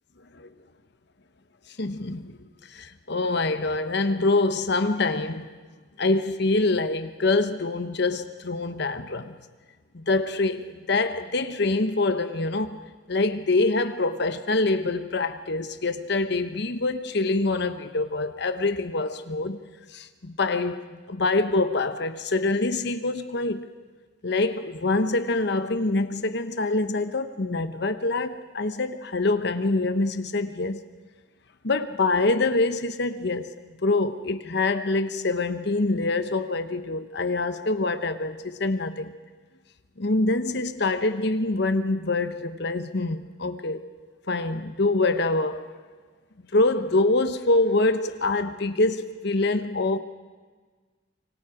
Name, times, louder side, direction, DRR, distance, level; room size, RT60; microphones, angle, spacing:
voice 1, 1.8-2.4 2.7-5.5 6.0-9.3 9.9-12.8 13.1-19.6 19.9-23.7 24.2-30.8 31.6-33.5 33.8-39.1 40.0-43.8 44.3-45.7 46.5-50.0, left 2 dB, 60° left, 1.0 m, -25 dB
25.5 x 24.5 x 5.0 m
head